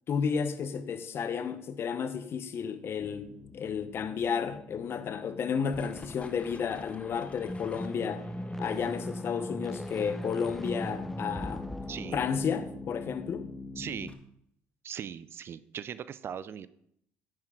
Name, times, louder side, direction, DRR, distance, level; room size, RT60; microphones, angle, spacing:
voice 1, 0.1-8.3 8.6-11.7 12.1-13.5, left 6 dB, 50° left, 0.9 m, -32 dB
sound 1, 3.0-14.1, left 3 dB, 25° left, 1.4 m, -45 dB
sound 2, 7.4-13.0, equal, 5° left, 0.6 m, -39 dB
voice 2, 11.9-12.2 13.8-14.1 14.8-16.7, right 8 dB, 50° right, 0.5 m, -39 dB
9.6 x 8.8 x 3.8 m
supercardioid pair, 70°, 5 cm